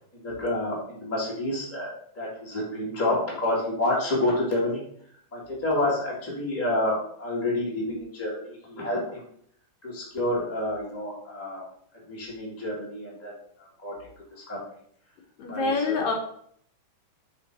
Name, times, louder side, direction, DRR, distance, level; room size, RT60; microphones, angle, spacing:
voice 1, 0.2-1.9 2.1-4.8 5.3-9.2 9.8-11.6 12.1-13.3 13.8-13.9 14.3-14.6 15.5-16.1, left 1 dB, 5° left, -5 dB, 1.6 m, -28 dB
voice 2, 15.4-16.1, left 4 dB, 65° left, 1 dB, 2.1 m, -26 dB
7.5 x 3.8 x 4.8 m, 0.64 s
omnidirectional pair, 3.8 m